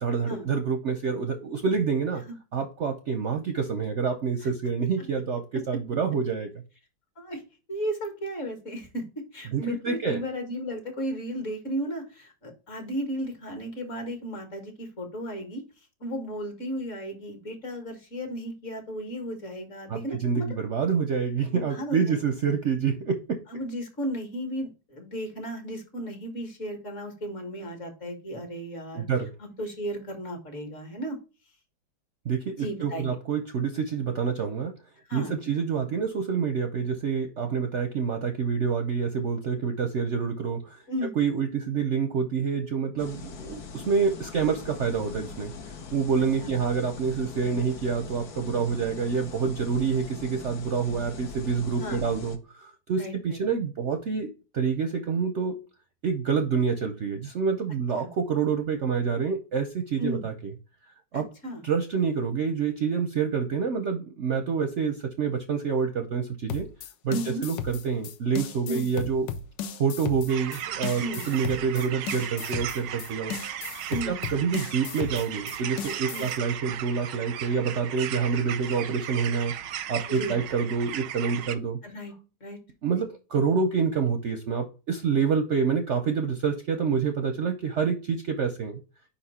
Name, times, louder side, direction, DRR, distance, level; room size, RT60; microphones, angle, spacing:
voice 1, 0.0-2.2 2.5-6.5 9.5-10.2 19.9-23.4 28.9-29.3 32.3-34.7 35.1-40.8 41.2-45.5 45.9-55.6 56.0-60.3 61.1-61.3 61.6-66.7 67.0-67.2 67.4-69.3 69.8-73.3 74.0-79.5 79.9-81.8 82.8-88.8, right 6 dB, 60° right, 6 dB, 0.8 m, -27 dB
voice 2, 7.7-9.0 9.3-15.6 16.0-20.5 21.5-22.2 23.5-29.1 29.4-31.2 32.6-33.2 35.1-35.4 40.9-41.1 46.4-46.5 51.8-52.0 53.0-53.4 58.0-58.1 60.0-60.2 61.1-61.6 67.1-67.4 68.7-68.9 71.0-71.2 73.9-74.2 76.1-76.3 80.1-80.4 81.8-82.1 82.4-82.6, equal, 45° left, 4 dB, 1.8 m, -34 dB
sound 1, 43.0-52.4, left 4 dB, 65° left, 1.4 m, -41 dB
sound 2, 66.5-76.4, left 7 dB, 90° left, 1.4 m, -36 dB
sound 3, 70.3-81.6, right 11 dB, 85° right, 1.3 m, -36 dB
5.2 x 4.4 x 4.1 m, 0.32 s
omnidirectional pair, 1.9 m